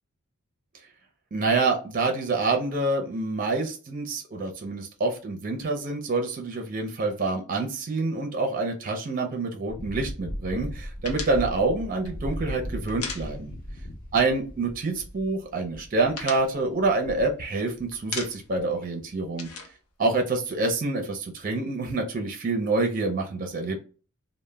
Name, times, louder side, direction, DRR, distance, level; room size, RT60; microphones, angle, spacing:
voice 1, 1.3-13.5 14.1-19.5 20.0-23.8, right 3 dB, 40° right, 3 dB, 0.4 m, -27 dB
sound 1, 9.7-18.2 18.5-18.6, equal, 40° left, 0.5 m, -37 dB
sound 2, 11.0-13.8 14.1-14.3 14.6-15.3 15.6-17.6 17.9-18.7 18.9-20.8, left 4 dB, 80° left, 0.6 m, -38 dB
2.0 x 2.0 x 3.2 m, 0.37 s
head